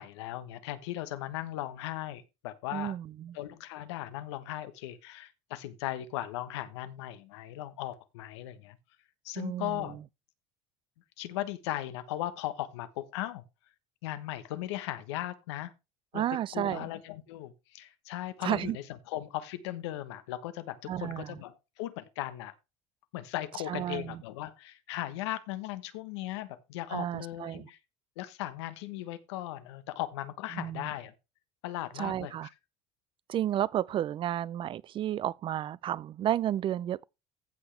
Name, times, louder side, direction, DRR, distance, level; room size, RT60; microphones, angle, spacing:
voice 1, 0.0-2.9 3.3-8.8 9.2-10.0 11.2-13.4 14.0-15.7 16.1-16.2 16.5-22.5 23.1-27.8 28.2-31.1 31.6-32.3, left 14 dB, 90° left, 1.1 m, -37 dB
voice 2, 2.7-3.4 9.4-10.0 16.1-16.9 18.4-18.8 20.9-21.4 23.7-24.2 26.9-27.7 30.5-30.9 32.0-32.5 33.3-37.0, right 11 dB, 40° right, 0.4 m, -32 dB
15.0 x 5.8 x 3.3 m
supercardioid pair, 105°, 14 cm